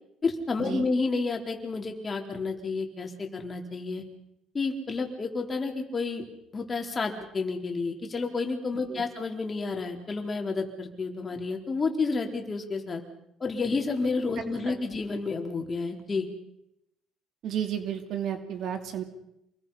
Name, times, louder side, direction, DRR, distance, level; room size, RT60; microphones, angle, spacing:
voice 1, 0.2-4.0 4.5-6.3 6.5-13.0 13.4-16.3, left 4 dB, 25° left, 2 dB, 3.9 m, -30 dB
voice 2, 17.4-19.0, right 9 dB, 55° right, 7 dB, 2.7 m, -32 dB
28.0 x 21.5 x 5.7 m, 0.82 s
cardioid pair, 135°, 0 cm